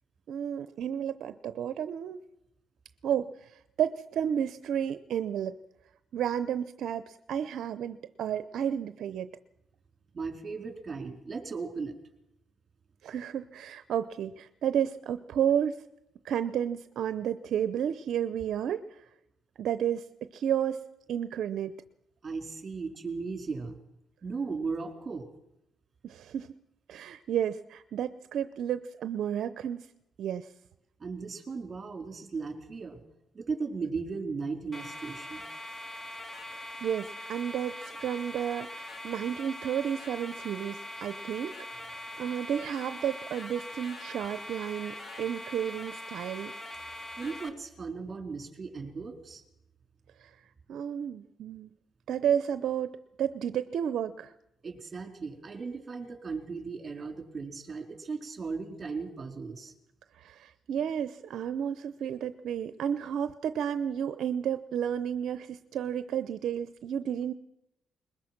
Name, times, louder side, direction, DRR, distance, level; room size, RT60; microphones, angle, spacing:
voice 1, 0.3-2.2 3.0-5.5 6.1-9.3 13.0-15.8 16.2-19.0 19.6-20.0 20.3-20.8 21.1-21.7 26.0-26.5 26.9-29.9 30.2-30.5 36.5-41.5 41.8-46.5 50.2-50.3 50.7-51.7 52.1-54.3 60.2-67.3, right 9 dB, 70° right, 12 dB, 0.7 m, -32 dB
voice 2, 10.1-12.0 20.7-20.8 22.2-23.8 24.2-25.3 31.0-33.0 33.3-35.5 47.2-49.4 54.6-59.7, right 4 dB, 35° right, 4 dB, 4.1 m, -37 dB
sound 1, 34.7-47.5, left 1 dB, 30° left, 2.3 m, -42 dB
21.5 x 20.5 x 6.0 m, 0.88 s
cardioid pair, 90°, 0 cm